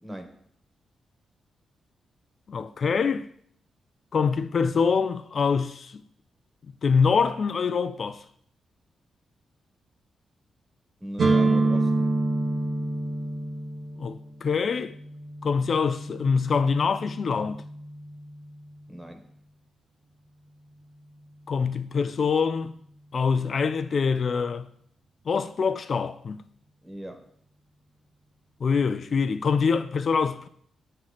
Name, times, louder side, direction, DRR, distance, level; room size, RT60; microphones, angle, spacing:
voice 1, 0.0-0.4 11.0-12.1 18.9-19.3 26.8-27.3, equal, 10° right, 1.3 m, -38 dB
voice 2, 2.5-3.3 4.1-6.0 6.8-8.2 14.0-14.9 15.4-17.6 21.5-22.7 23.1-24.7 25.3-26.4 28.6-30.5, left 5 dB, 55° left, 0.5 m, -25 dB
Dmin full OK, 11.2-19.0, right 2 dB, 60° right, 1.1 m, -28 dB
7.6 x 3.3 x 5.6 m
cardioid pair, 65°, 0 cm